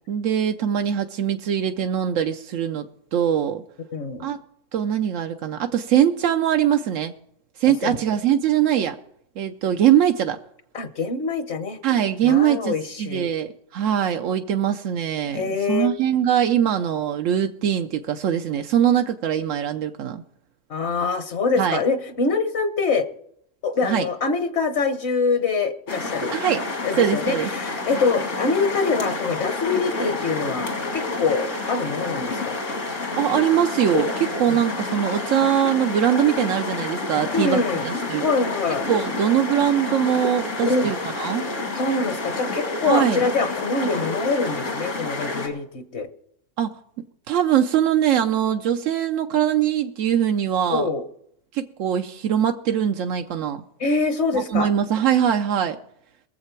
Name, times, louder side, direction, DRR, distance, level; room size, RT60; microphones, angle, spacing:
voice 1, 0.1-3.6 4.2-4.4 4.7-7.1 7.6-9.0 9.4-10.4 11.8-20.2 21.6-21.8 23.8-24.1 26.3-26.6 27.0-27.5 33.2-38.3 38.9-41.5 42.8-43.2 46.6-46.7 47.3-50.9 51.5-53.6 54.3-55.8, right 9 dB, 85° right, 1.0 m, -22 dB
voice 2, 3.9-4.3 7.6-8.0 10.7-11.8 12.2-13.3 15.3-15.9 20.7-23.1 23.6-26.4 26.8-32.6 34.5-34.6 37.3-37.9 38.2-38.9 40.6-40.9 41.7-46.1 50.7-51.1 53.8-54.7, left 4 dB, 60° left, 1.1 m, -24 dB
sound 1, 25.9-45.5, left 3 dB, 80° left, 2.6 m, -29 dB
22.5 x 7.5 x 4.5 m
omnidirectional pair, 1.3 m